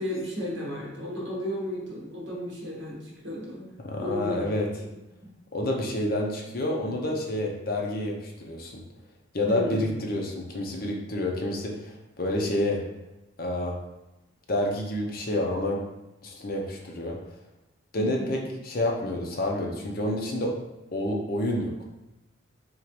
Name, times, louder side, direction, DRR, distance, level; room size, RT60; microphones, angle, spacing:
voice 1, 0.0-3.6 4.0-4.4 4.7-5.0 9.5-9.8 18.0-18.3, equal, 70° right, -4 dB, 1.3 m, -33 dB
voice 2, 3.8-4.7 5.5-8.8 9.3-12.8 13.4-13.8 14.5-15.8 16.2-17.2 17.9-20.5 20.9-21.8, left 1 dB, 45° left, -1 dB, 0.6 m, -28 dB
3.6 x 3.0 x 3.0 m, 0.98 s
head